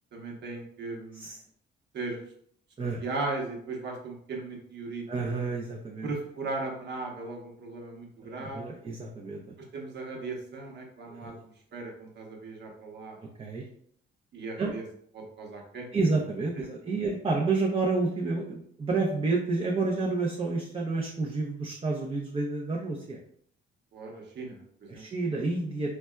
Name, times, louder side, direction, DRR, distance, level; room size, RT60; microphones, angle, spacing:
voice 1, 0.1-1.3 1.9-2.2 3.0-5.0 6.0-8.6 9.7-11.3 11.7-13.2 14.3-14.8 15.1-16.1 16.6-16.7 23.9-25.0, right 3 dB, 60° right, 0 dB, 0.9 m, -37 dB
voice 2, 5.1-6.1 8.2-9.4 11.1-11.4 13.4-13.6 14.6-14.7 15.9-23.2 24.9-26.0, right 3 dB, 25° right, -2 dB, 0.5 m, -29 dB
4.0 x 2.2 x 2.2 m, 0.65 s
cardioid pair, 90°, 20 cm